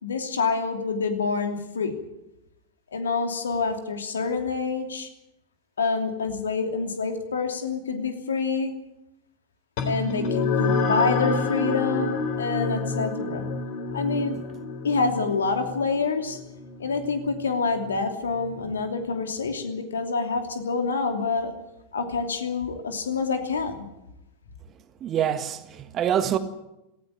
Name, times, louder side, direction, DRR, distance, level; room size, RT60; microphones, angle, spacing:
voice 1, 0.0-1.9 2.9-5.1 5.8-8.7 9.9-13.5 13.9-14.4 14.8-16.4 16.8-21.5 21.9-23.8, left 4 dB, 70° left, 2.9 m, -27 dB
sound 1, 9.8-18.6, left 4 dB, 50° left, 3.7 m, -29 dB
voice 2, 25.0-26.4, right 9 dB, 30° right, 1.7 m, -25 dB
18.0 x 16.0 x 9.9 m
figure-of-eight pair, 90°, 0 cm